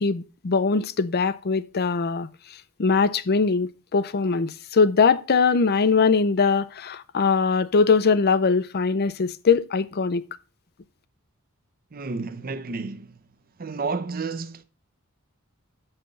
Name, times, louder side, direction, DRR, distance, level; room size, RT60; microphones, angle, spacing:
voice 1, 0.0-2.3 2.8-10.2, left 5 dB, 45° left, 0.5 m, -21 dB
voice 2, 11.9-13.2 13.6-14.6, right 4 dB, 45° right, 0.7 m, -31 dB
7.2 x 5.7 x 5.2 m
head